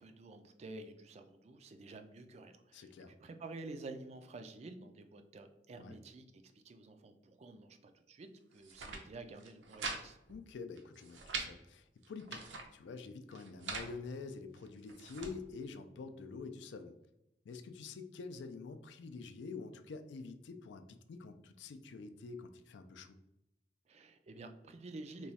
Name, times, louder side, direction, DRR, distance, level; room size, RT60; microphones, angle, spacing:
voice 1, 0.0-10.2 23.9-25.3, right 2 dB, 35° right, 7 dB, 0.3 m, -50 dB
voice 2, 2.7-3.1 5.8-6.0 10.3-16.9 17.4-23.2, left 4 dB, 70° left, 9 dB, 0.4 m, -47 dB
sound 1, 8.5-9.0 9.4-10.0 10.3-10.4 10.8-11.5 12.0-12.7 13.3-13.9 14.6-15.3, right 4 dB, 80° right, 0.6 m, -43 dB
3.0 x 2.3 x 4.0 m, 0.89 s
head